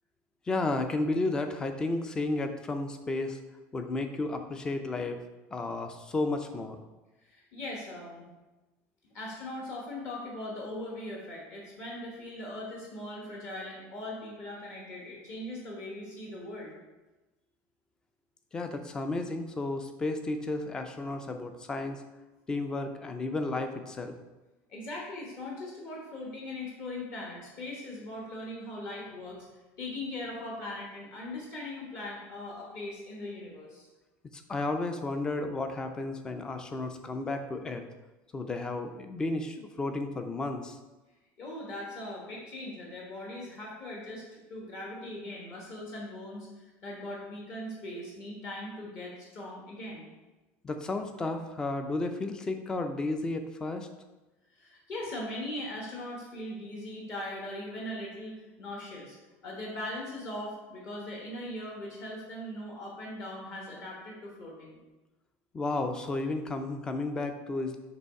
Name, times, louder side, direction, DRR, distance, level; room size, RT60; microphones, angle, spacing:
voice 1, 0.5-3.4 3.7-5.2 5.5-6.8 18.5-22.0 22.5-24.2 34.3-37.8 38.3-40.8 50.6-53.9 65.5-67.8, left 2 dB, 10° left, 7 dB, 0.4 m, -32 dB
voice 2, 7.2-8.2 9.1-16.7 24.7-29.5 29.8-33.9 41.4-50.1 54.5-59.2 59.4-64.8, left 1 dB, 40° left, -3 dB, 1.1 m, -40 dB
6.7 x 3.1 x 4.7 m, 1.1 s
cardioid pair, 170°, 6 cm